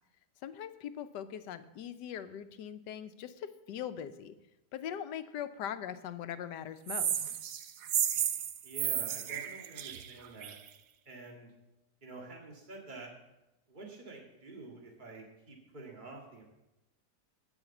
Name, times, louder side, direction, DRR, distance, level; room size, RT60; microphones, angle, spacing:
voice 1, 0.4-4.3 4.7-7.3, left 9 dB, 85° left, 11 dB, 1.4 m, -41 dB
sound 1, 6.9-10.7, right 9 dB, 65° right, 1.1 m, -33 dB
voice 2, 8.6-10.6 11.1-11.5 12.0-13.1 13.7-16.4, right 3 dB, 30° right, -1 dB, 2.2 m, -48 dB
15.5 x 5.8 x 7.1 m, 0.94 s
omnidirectional pair, 1.8 m